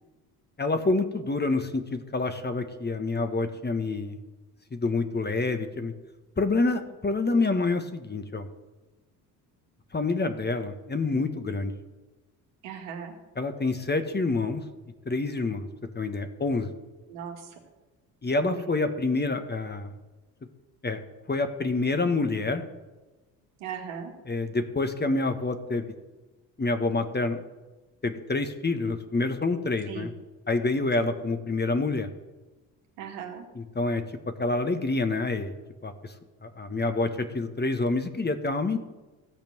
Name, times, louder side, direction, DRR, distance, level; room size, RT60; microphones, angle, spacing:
voice 1, 0.6-4.2 4.7-5.9 6.4-8.5 9.9-11.7 13.4-14.6 15.0-15.7 15.9-16.7 18.2-19.9 20.8-21.0 21.3-22.6 24.3-25.9 26.6-27.4 28.0-30.1 30.5-32.1 33.5-34.0 34.4-35.6 35.8-36.1 36.4-38.8, left 3 dB, 20° left, 8 dB, 1.4 m, -27 dB
voice 2, 12.6-13.1 17.1-17.5 18.4-18.6 23.6-24.1 29.9-30.1 33.0-33.4, right 7 dB, 75° right, 2 dB, 2.1 m, -38 dB
15.0 x 5.2 x 7.8 m, 1.2 s
hypercardioid pair, 55°, 48 cm